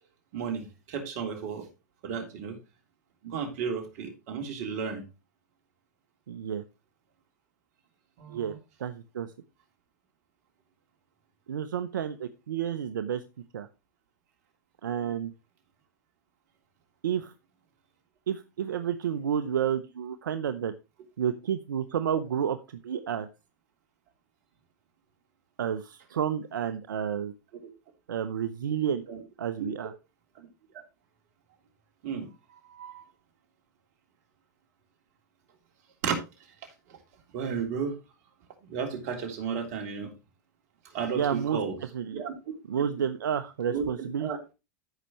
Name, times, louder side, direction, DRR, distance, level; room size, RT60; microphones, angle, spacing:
voice 1, 0.3-1.7 2.0-2.6 3.2-5.0 8.2-8.6 29.1-29.2 29.6-29.7 30.3-30.5 32.0-33.1 36.0-36.2 36.6-37.0 37.3-37.9 38.7-40.1 40.8-41.8 42.1-42.3 43.7-44.5, right 6 dB, 60° right, 3 dB, 3.1 m, -34 dB
voice 2, 6.3-6.6 8.3-8.5 8.8-9.3 11.5-13.2 13.5-13.7 14.8-15.3 17.0-17.3 18.3-20.7 21.2-23.3 25.6-27.3 28.1-29.0 29.4-29.9 41.1-41.6 41.9-42.2 42.7-44.3, right 8 dB, 85° right, 12 dB, 0.7 m, -30 dB
14.0 x 5.7 x 3.0 m, 0.27 s
hypercardioid pair, 110°, 10 cm